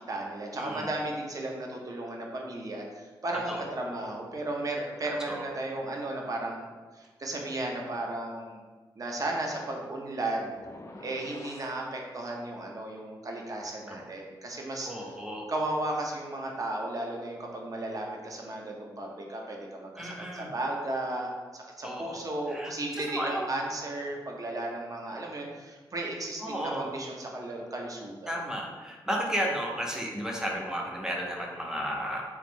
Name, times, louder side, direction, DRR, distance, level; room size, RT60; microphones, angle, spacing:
voice 1, 0.0-6.7 7.0-8.6 9.0-10.5 11.0-14.9 15.5-28.3, right 2 dB, 40° right, 0 dB, 0.7 m, -35 dB
voice 2, 0.5-0.9 3.5-3.6 5.0-5.5 13.9-14.0 14.9-15.5 20.0-20.5 21.8-23.5 26.4-26.9 28.3-32.2, equal, 5° right, -1 dB, 0.7 m, -33 dB
sound 1, 10.5-11.8, left 2 dB, 35° left, 0.4 m, -46 dB
3.0 x 2.4 x 3.6 m, 1.4 s
cardioid pair, 75°, 9 cm